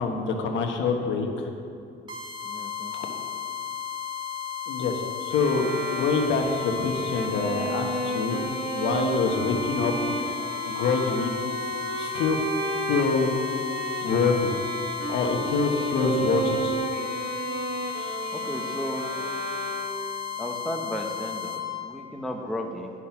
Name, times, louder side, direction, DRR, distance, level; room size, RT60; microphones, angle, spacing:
voice 1, 0.0-1.5 2.9-3.1 4.7-8.5 8.7-10.2 10.6-11.3 11.9-12.4 12.9-13.3 14.0-14.5 15.1-16.8, left 4 dB, 70° left, 3 dB, 1.2 m, -26 dB
sound 1, 2.1-21.6, left 8 dB, 25° right, 1.9 m, -34 dB
voice 2, 2.4-3.1 18.3-19.1 20.4-22.9, equal, ahead, 1 dB, 1.0 m, -34 dB
sound 2, 5.3-20.3, right 4 dB, 85° right, 1.1 m, -33 dB
9.6 x 6.0 x 5.8 m, 2.4 s
cardioid pair, 95°, 20 cm